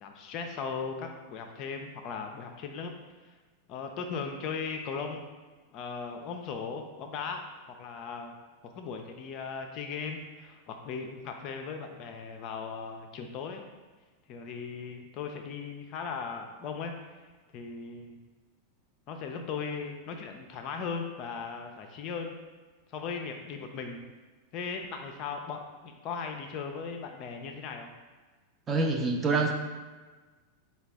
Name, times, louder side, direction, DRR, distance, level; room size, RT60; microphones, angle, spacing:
voice 1, 0.0-2.9 3.7-5.3 5.7-7.4 7.8-8.3 8.7-13.7 14.3-16.9 17.5-18.2 19.1-22.4 22.9-24.0 24.5-27.9, left 5 dB, 40° left, 4 dB, 0.4 m, -38 dB
voice 2, 28.7-29.5, right 3 dB, 20° right, 3 dB, 0.4 m, -26 dB
4.7 x 2.2 x 3.4 m, 1.3 s
figure-of-eight pair, 90°, 0 cm